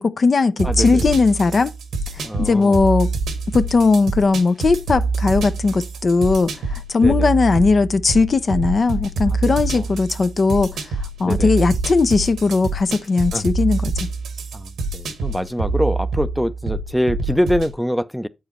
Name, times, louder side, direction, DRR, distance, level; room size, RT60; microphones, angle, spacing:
voice 1, 0.0-1.7 2.1-3.1 3.5-10.8 11.2-13.9, left 4 dB, 55° left, 0.6 m, -18 dB
voice 2, 0.6-1.1 2.2-2.8 7.0-7.3 9.3-9.4 9.7-9.8 11.2-11.5 13.3-13.4 14.5-18.3, equal, ahead, 0.5 m, -24 dB
sound 1, 0.6-17.7, right 3 dB, 90° right, 1.3 m, -26 dB
7.9 x 4.8 x 4.2 m
cardioid pair, 50°, 0 cm